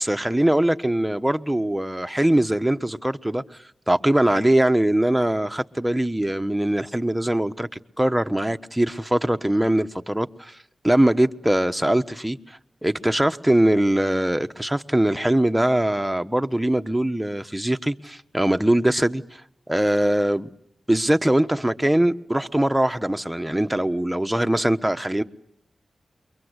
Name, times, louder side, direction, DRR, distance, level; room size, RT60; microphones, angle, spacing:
voice 1, 0.0-3.4 3.9-7.7 8.0-10.5 10.8-19.4 19.7-20.5 20.9-25.2, right 1 dB, 10° right, 1.2 m, -22 dB
28.5 x 23.5 x 8.2 m
cardioid pair, 55°, 0 cm